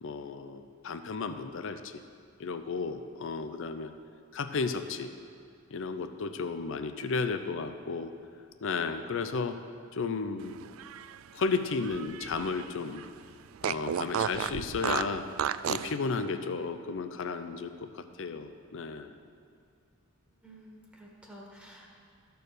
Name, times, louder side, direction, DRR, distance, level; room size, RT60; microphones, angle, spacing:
voice 1, 0.0-2.0 2.4-3.9 4.3-5.1 5.7-8.1 8.6-9.6 9.9-10.5 11.3-13.0 13.6-15.3 15.7-19.1, left 4 dB, 65° left, 9 dB, 0.5 m, -33 dB
Fart, 10.6-12.7 13.0-13.1 13.6-16.0, right 9 dB, 70° right, 0.3 m, -33 dB
voice 2, 20.3-21.9, equal, 5° right, -2 dB, 1.3 m, -51 dB
13.5 x 4.6 x 6.6 m, 2.4 s
head